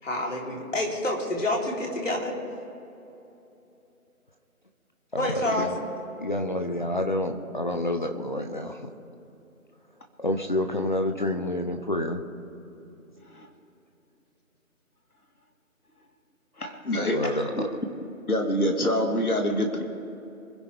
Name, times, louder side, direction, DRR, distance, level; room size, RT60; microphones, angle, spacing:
voice 1, 0.0-2.4 5.2-5.7, left 1 dB, 60° left, -2 dB, 3.8 m, -28 dB
voice 2, 5.1-5.8 6.2-8.9 10.2-12.2 17.1-17.7, left 1 dB, 35° left, 5 dB, 1.0 m, -28 dB
voice 3, 16.6-17.6 18.3-19.9, equal, 80° left, 3 dB, 2.4 m, -26 dB
26.5 x 11.0 x 3.6 m, 2.9 s
figure-of-eight pair, 165°, 43 cm